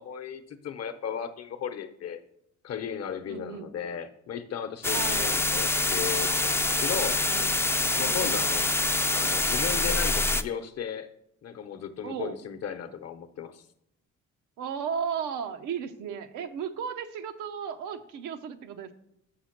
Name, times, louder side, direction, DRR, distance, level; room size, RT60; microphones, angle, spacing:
voice 1, 0.0-2.2 2.6-7.2 8.0-8.6 9.1-11.1 11.4-13.6, left 8 dB, 55° left, 10 dB, 0.8 m, -35 dB
voice 2, 3.3-3.7 4.9-5.3 7.0-7.5 7.9-8.4 12.0-12.4 14.6-18.9, right 7 dB, 90° right, 8 dB, 0.7 m, -35 dB
sound 1, 4.8-10.4, left 2 dB, 10° left, 0.3 m, -26 dB
6.2 x 5.7 x 5.8 m, 0.77 s
cardioid pair, 90°, 30 cm